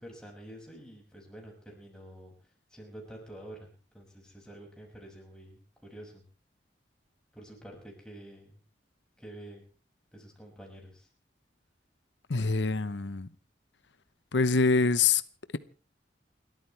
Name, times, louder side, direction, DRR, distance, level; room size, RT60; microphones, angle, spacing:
voice 1, 0.0-2.3 2.7-6.2 7.3-8.6 9.2-9.6 10.1-11.1, right 1 dB, 5° left, 6.2 m, -48 dB
voice 2, 12.3-13.3 14.3-15.2, left 4 dB, 85° left, 0.9 m, -25 dB
29.5 x 13.5 x 3.4 m
head